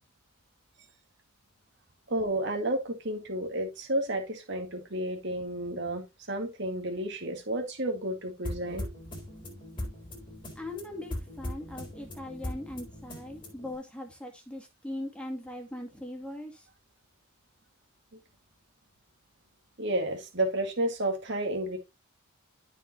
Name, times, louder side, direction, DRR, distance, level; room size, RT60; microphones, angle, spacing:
voice 1, 2.1-8.9 19.8-21.8, right 1 dB, 55° right, 1.9 m, -31 dB
sound 1, 8.4-13.8, left 1 dB, 25° left, 4.2 m, -40 dB
voice 2, 10.6-16.6, left 1 dB, 5° left, 2.2 m, -40 dB
14.0 x 5.4 x 2.8 m
head